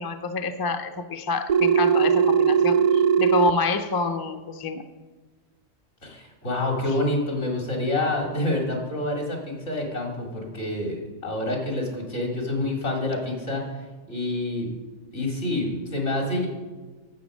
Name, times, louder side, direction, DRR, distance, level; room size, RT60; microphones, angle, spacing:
voice 1, 0.0-4.8, left 4 dB, 30° left, 8 dB, 0.4 m, -27 dB
Telephone, 1.5-3.5, right 7 dB, 80° right, 0.3 m, -19 dB
voice 2, 6.0-13.6 14.1-14.7 15.1-16.5, left 1 dB, 70° left, 0 dB, 3.1 m, -27 dB
10.5 x 7.9 x 6.3 m, 1.4 s
omnidirectional pair, 1.3 m